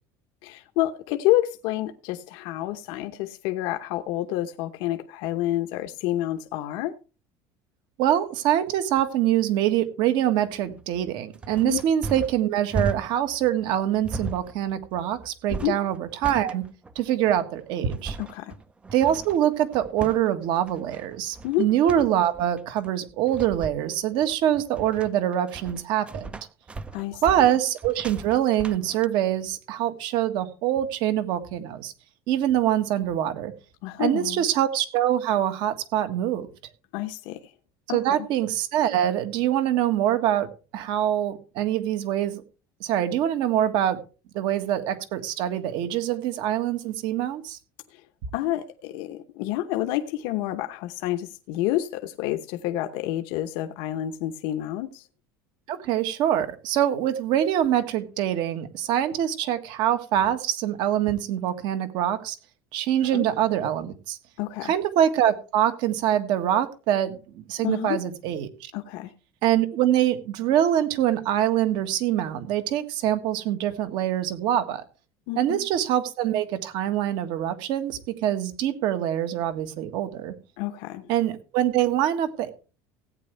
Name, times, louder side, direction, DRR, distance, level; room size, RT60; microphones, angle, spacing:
voice 1, 0.4-7.0 11.6-11.8 15.5-15.8 18.2-18.5 21.4-21.7 26.9-27.2 33.8-34.5 36.9-37.5 37.9-38.2 47.9-48.0 48.3-55.1 63.0-63.3 64.4-64.7 67.6-68.0 68.7-69.1 75.3-75.6 80.6-81.1, left 14 dB, 70° left, 1.0 m, -29 dB
voice 2, 8.0-16.6 16.9-18.2 18.9-26.3 27.2-31.9 32.3-33.5 34.0-36.5 37.9-42.4 42.8-44.0 44.3-47.6 55.7-62.4 62.7-64.2 64.6-68.7 69.4-74.8 75.4-80.3 81.1-82.5, right 11 dB, 60° right, 1.6 m, -24 dB
sound 1, 10.5-29.1, right 3 dB, 10° right, 0.5 m, -37 dB
16.5 x 9.2 x 3.3 m
cardioid pair, 165°, 9 cm